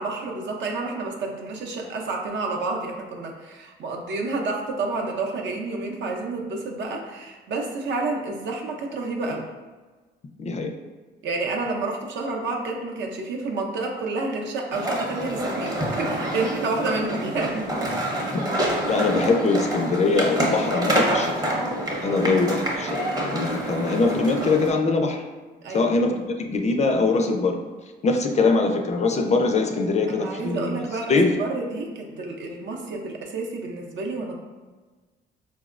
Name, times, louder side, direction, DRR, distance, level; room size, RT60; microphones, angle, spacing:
voice 1, 0.0-9.5 11.2-17.9 22.1-22.3 25.6-25.9 30.1-34.3, right 3 dB, 65° right, 1 dB, 0.6 m, -29 dB
voice 2, 10.4-10.7 18.3-18.4 18.9-21.3 22.0-25.2 25.7-27.6 28.0-30.7 31.1-31.4, left 3 dB, 35° left, 4 dB, 0.4 m, -22 dB
sound 1, 14.7-24.7, right 1 dB, 20° right, 0.7 m, -27 dB
4.3 x 2.0 x 2.4 m, 1.3 s
cardioid pair, 90°, 20 cm